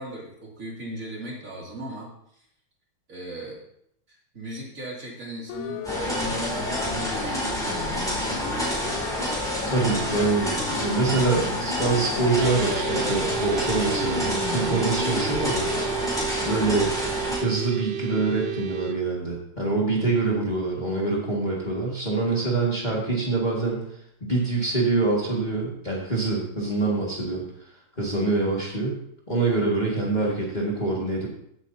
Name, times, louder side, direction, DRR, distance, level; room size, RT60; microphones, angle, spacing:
voice 1, 0.0-2.5 3.1-3.6 4.1-9.0, right 1 dB, 40° right, -3 dB, 2.9 m, -38 dB
Siren, 5.5-15.9, left 9 dB, 80° left, 1.4 m, -35 dB
sound 1, 5.8-17.4, equal, ahead, 4.9 m, -29 dB
voice 2, 9.7-15.7 16.4-16.9 17.4-23.8 24.2-27.4 28.0-29.0 29.3-31.3, right 3 dB, 20° left, -4 dB, 2.1 m, -25 dB
sound 2, 12.4-18.9, right 8 dB, 65° right, 1.1 m, -32 dB
16.5 x 8.3 x 2.8 m, 0.72 s
omnidirectional pair, 2.2 m